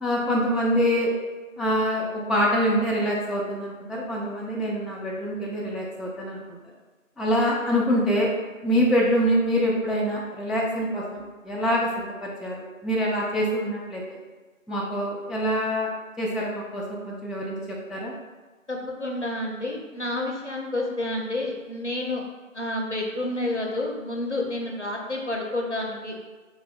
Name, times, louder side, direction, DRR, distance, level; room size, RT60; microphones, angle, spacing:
voice 1, 0.0-1.1 1.6-6.6 7.2-8.3 8.6-14.2 14.7-15.9 16.2-18.2, equal, ahead, -4 dB, 0.3 m, -25 dB
voice 2, 18.7-22.2 22.5-26.1, left 1 dB, 55° left, -1 dB, 0.5 m, -29 dB
3.3 x 2.2 x 2.5 m, 1.3 s
figure-of-eight pair, 180°, 41 cm